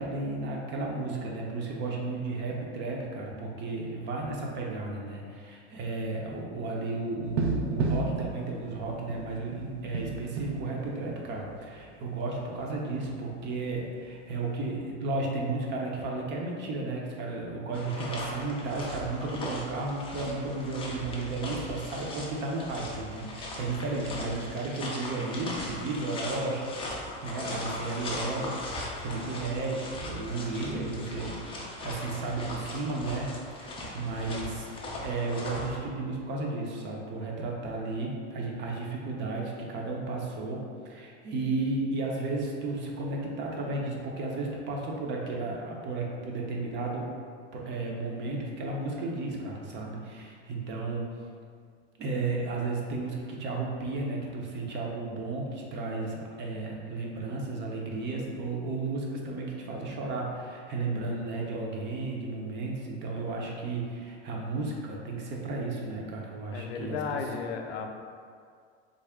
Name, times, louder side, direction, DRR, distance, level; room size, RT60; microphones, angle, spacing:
voice 1, 0.0-34.7 35.0-47.1 47.5-51.1 52.0-67.2, right 3 dB, 35° right, -1 dB, 0.6 m, -33 dB
sound 1, 7.2-11.8 12.1-12.2 12.5-13.2 14.7-14.8, right 4 dB, 85° right, 0.5 m, -33 dB
sound 2, 17.7-35.8, left 1 dB, 15° left, 0.4 m, -39 dB
voice 2, 66.5-67.9, left 5 dB, 90° left, 3 dB, 0.5 m, -34 dB
3.7 x 2.0 x 3.4 m, 2.1 s
supercardioid pair, 125°, 32 cm